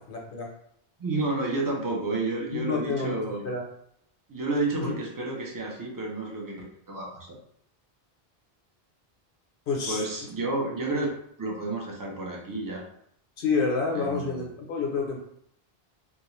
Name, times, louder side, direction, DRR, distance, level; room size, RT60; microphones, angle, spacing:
voice 1, 0.1-0.5 2.5-3.2 3.4-3.6 4.7-4.9 9.7-10.1 13.4-15.2, left 4 dB, 65° left, 0 dB, 0.7 m, -28 dB
voice 2, 1.0-3.6 4.3-6.6 6.9-7.3 9.9-12.9 13.9-14.4, right 2 dB, 25° right, -2 dB, 0.5 m, -30 dB
2.3 x 2.3 x 3.0 m, 0.70 s
omnidirectional pair, 1.0 m